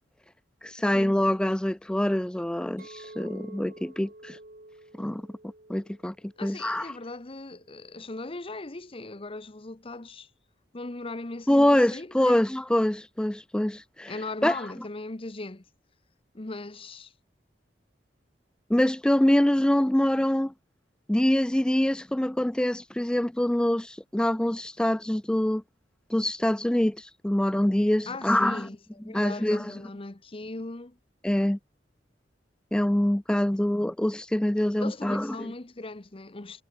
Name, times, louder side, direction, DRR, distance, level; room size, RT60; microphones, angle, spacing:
voice 1, 0.6-4.4 5.0-5.2 5.7-6.1 6.4-6.9 11.5-14.1 14.4-14.6 18.7-20.5 21.1-25.6 26.1-28.7 29.1-29.7 31.2-31.6 32.7-35.5, left 1 dB, 5° left, 0.3 m, -25 dB
Chink clink, 2.8-7.1 7.6-8.0, right 2 dB, 55° right, 3.5 m, -50 dB
voice 2, 6.4-10.3 10.7-12.4 14.1-15.6 16.3-17.1 28.1-28.8 29.0-31.0 33.5-33.6 34.8-36.6, left 2 dB, 30° left, 1.0 m, -38 dB
head